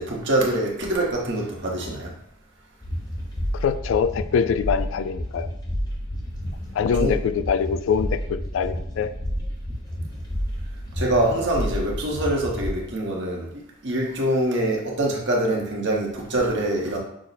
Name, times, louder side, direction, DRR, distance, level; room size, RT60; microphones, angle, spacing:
voice 1, 0.0-2.1 7.0-7.1 10.9-13.5 13.8-17.0, right 1 dB, 60° right, -1 dB, 1.1 m, -24 dB
sound 1, 2.8-12.7, equal, 20° left, 0.8 m, -30 dB
voice 2, 3.5-5.5 6.7-9.1, left 7 dB, 75° left, 12 dB, 0.3 m, -24 dB
6.2 x 2.1 x 4.0 m, 0.76 s
head